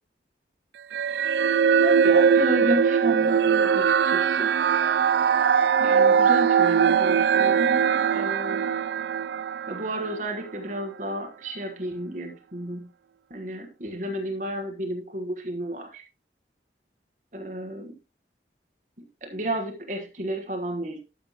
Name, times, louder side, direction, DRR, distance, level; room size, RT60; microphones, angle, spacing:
sound 1, 0.9-10.4, right 7 dB, 75° right, 0.3 m, -21 dB
voice 1, 1.8-4.5 5.8-8.7 9.7-12.9 13.3-16.0 17.3-17.9 19.2-21.0, right 1 dB, 45° right, 3 dB, 1.3 m, -32 dB
12.0 x 6.5 x 2.9 m, 0.30 s
head